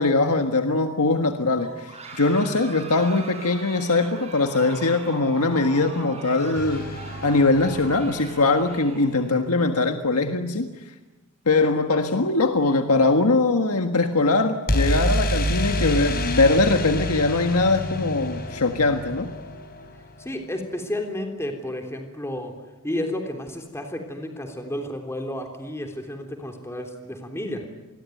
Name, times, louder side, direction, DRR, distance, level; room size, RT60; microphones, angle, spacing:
voice 1, 0.0-6.8 7.2-10.7 11.4-19.3, left 3 dB, 85° left, 6 dB, 1.6 m, -21 dB
sound 1, 1.6-9.4, right 3 dB, 30° right, 7.6 m, -41 dB
sound 2, 6.6-8.6 14.7-20.5, equal, 45° left, 4.0 m, -28 dB
voice 2, 20.2-22.6 22.8-27.7, left 1 dB, 10° left, 4 dB, 3.4 m, -31 dB
27.5 x 21.0 x 9.3 m, 1.1 s
head